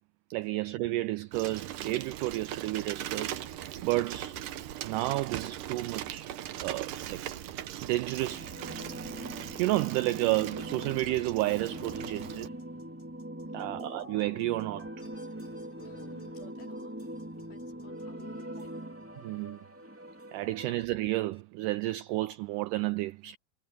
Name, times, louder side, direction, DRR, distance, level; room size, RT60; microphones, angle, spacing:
voice 1, 0.3-3.4 3.8-4.4 4.8-6.3 6.6-7.2 7.8-8.5 9.6-12.5 13.5-14.9 19.2-19.6 20.3-23.4, right 18 dB, 85° right, 1.8 m, -31 dB
Bicycle, 1.3-12.5, right 11 dB, 70° right, 2.5 m, -40 dB
sound 1, 8.2-20.8, right 1 dB, 5° right, 2.3 m, -42 dB
sound 2, 15.0-20.2 20.6-20.7 21.3-21.4, left 1 dB, 20° left, 6.1 m, -66 dB
voice 2, 15.7-17.0 17.4-18.7, left 9 dB, 80° left, 5.5 m, -53 dB
omnidirectional pair, 4.2 m